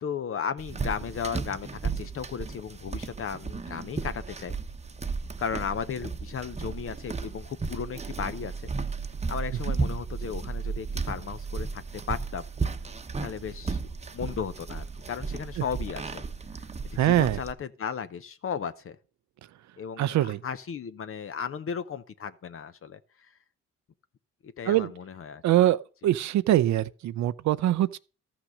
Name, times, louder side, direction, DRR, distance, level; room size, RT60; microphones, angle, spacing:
voice 1, 0.0-4.5 5.4-8.7 9.3-12.5 13.2-13.8 14.1-16.2 17.0-19.0 19.8-23.3 24.4-25.4, left 7 dB, 45° left, 0.8 m, -35 dB
sound 1, 0.6-17.5, right 4 dB, 20° right, 0.9 m, -34 dB
voice 2, 17.0-17.4 20.0-20.4 24.7-24.9 25.4-28.0, right 13 dB, 70° right, 0.6 m, -23 dB
13.5 x 6.0 x 6.3 m
cardioid pair, 90°, 30 cm